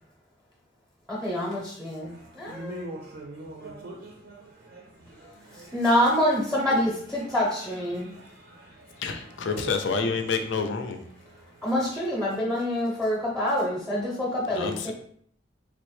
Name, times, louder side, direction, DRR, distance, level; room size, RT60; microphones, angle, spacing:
voice 1, 1.1-2.8 5.5-8.1 11.6-14.9, equal, ahead, -4 dB, 0.6 m, -26 dB
voice 2, 2.0-5.8 7.2-10.2 11.2-11.7, right 1 dB, 55° right, 0 dB, 0.4 m, -44 dB
voice 3, 9.0-11.0 14.5-14.9, left 5 dB, 70° left, 6 dB, 0.4 m, -28 dB
3.3 x 2.0 x 3.1 m, 0.63 s
head